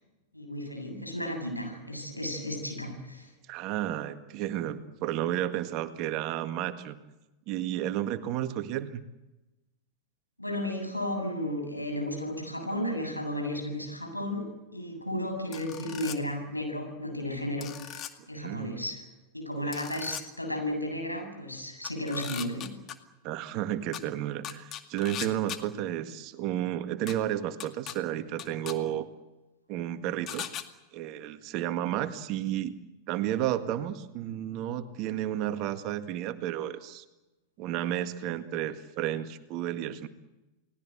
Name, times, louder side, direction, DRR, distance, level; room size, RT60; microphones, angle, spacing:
voice 1, 0.3-3.3 10.4-19.0 19.3-22.7, left 1 dB, 85° left, 4 dB, 7.7 m, -34 dB
voice 2, 3.5-7.0 7.5-9.0 18.4-18.9 19.6-19.7 23.2-29.1 29.7-30.4 30.9-32.7 33.1-37.0 37.6-40.1, right 12 dB, 40° right, 10 dB, 1.8 m, -32 dB
sound 1, 15.5-16.2 17.6-18.1 19.7-20.2 21.8-22.9 23.9-24.0 24.4-25.6 27.1-27.2 27.6-27.9 28.4-28.7 30.3-30.6, left 10 dB, 30° left, 2.2 m, -38 dB
30.0 x 20.0 x 8.0 m, 1.0 s
figure-of-eight pair, 90°, 0 cm